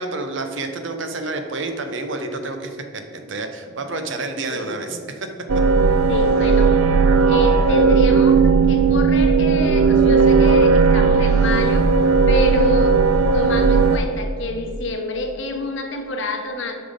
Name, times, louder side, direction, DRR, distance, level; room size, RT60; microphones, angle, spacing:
voice 1, 0.0-2.8 3.1-5.3, right 2 dB, 60° right, 6 dB, 0.8 m, -29 dB
sound 1, 5.5-14.0, right 4 dB, 85° right, 0.5 m, -16 dB
voice 2, 6.1-6.7 7.3-11.9 12.3-13.0 13.3-16.7, left 1 dB, 60° left, 4 dB, 1.0 m, -27 dB
6.9 x 5.9 x 5.3 m, 2.4 s
head